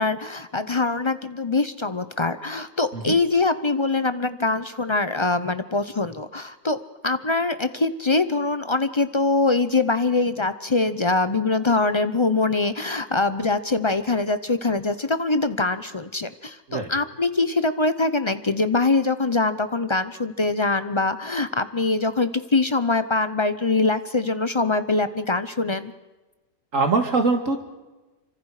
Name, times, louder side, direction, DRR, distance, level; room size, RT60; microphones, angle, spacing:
voice 1, 0.0-6.8 7.0-25.9, left 3 dB, 30° left, 11 dB, 0.5 m, -23 dB
voice 2, 26.7-27.6, right 3 dB, 55° right, 5 dB, 2.4 m, -22 dB
27.5 x 25.0 x 4.9 m, 1.1 s
omnidirectional pair, 1.6 m